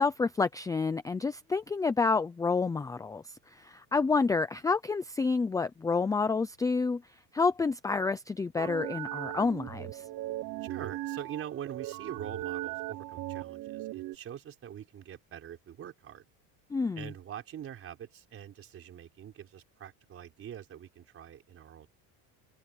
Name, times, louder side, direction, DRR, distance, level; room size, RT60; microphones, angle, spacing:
voice 1, 0.0-7.0 7.3-10.0 16.7-17.1, left 4 dB, 10° left, 0.5 m, -29 dB
sound 1, 8.6-14.2, right 16 dB, 50° right, 1.0 m, -38 dB
voice 2, 10.6-16.2 17.0-21.9, right 10 dB, 35° right, 4.1 m, -44 dB
open air
cardioid pair, 160°, 39 cm